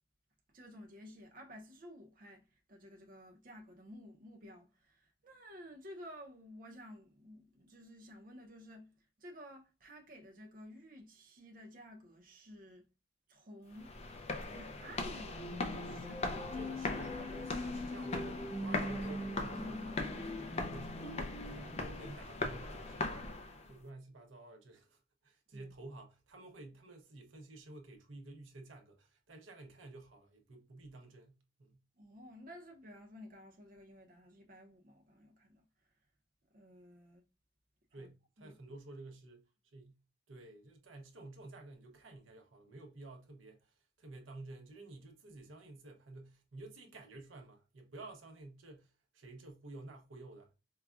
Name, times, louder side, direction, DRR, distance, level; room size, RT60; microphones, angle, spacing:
voice 1, 0.5-12.9 13.3-14.0 14.5-16.7 25.5-25.7 32.0-35.6 36.5-37.2 37.9-38.1 38.4-38.5, equal, 45° right, 0.7 m, -53 dB
sound 1, 13.7-23.7, left 2 dB, 35° left, 0.5 m, -40 dB
sound 2, 15.3-22.1, left 1 dB, 60° left, 2.0 m, -43 dB
voice 2, 16.5-20.1 20.5-23.4 23.7-31.8 37.9-39.4 39.7-40.0 40.3-50.5, right 2 dB, 90° right, 0.8 m, -52 dB
4.7 x 2.3 x 2.4 m
head